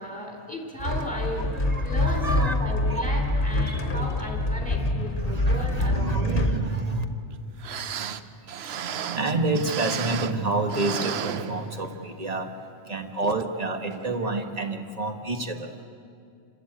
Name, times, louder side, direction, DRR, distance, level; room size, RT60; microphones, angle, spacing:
voice 1, 0.0-1.4 1.8-6.5, left 1 dB, 5° left, 1 dB, 3.2 m, -35 dB
sound 1, 0.8-6.6, left 2 dB, 45° left, 1.5 m, -25 dB
voice 2, 1.5-2.5 2.9-3.0 3.6-7.0 8.0-15.9, right 2 dB, 35° right, 5 dB, 1.5 m, -30 dB
sound 2, 7.3-7.4 7.6-10.4 10.7-12.1 12.5-12.6 13.2-13.5 13.9-14.0, right 8 dB, 65° right, 0.9 m, -33 dB
28.5 x 13.0 x 8.8 m, 2.3 s
omnidirectional pair, 1.2 m